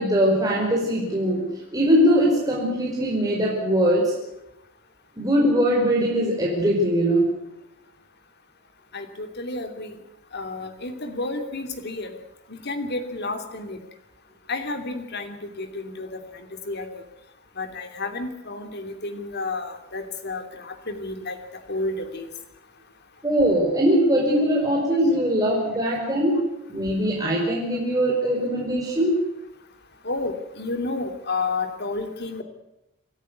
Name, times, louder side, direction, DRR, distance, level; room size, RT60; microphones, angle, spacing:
voice 1, 0.0-1.5 1.7-4.1 5.2-7.3 23.2-26.4 26.7-29.2, equal, 15° right, -3 dB, 5.1 m, -21 dB
voice 2, 8.9-10.0 10.3-12.2 12.5-13.8 14.5-17.0 17.6-22.3 30.0-32.4, left 3 dB, 50° left, 7 dB, 2.8 m, -31 dB
26.0 x 13.5 x 9.5 m, 0.91 s
head